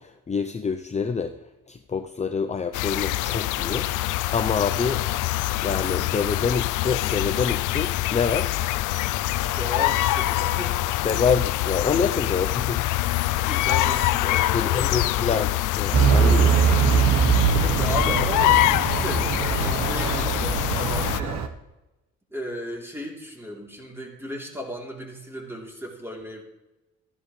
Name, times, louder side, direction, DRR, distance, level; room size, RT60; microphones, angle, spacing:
voice 1, 0.0-3.9 4.3-5.3 5.6-8.6 11.0-12.9 14.5-16.6, left 5 dB, 25° left, 8 dB, 0.6 m, -27 dB
sound 1, 2.7-21.2, left 16 dB, 85° left, 0.5 m, -25 dB
voice 2, 9.6-10.8 13.0-15.2 17.1-17.2 17.6-21.5 22.3-26.4, equal, 10° right, -1 dB, 3.2 m, -35 dB
Truck / Idling, 15.9-21.5, right 7 dB, 60° right, 1.1 m, -22 dB
14.5 x 11.0 x 3.2 m, 1.0 s
cardioid pair, 90°, 30 cm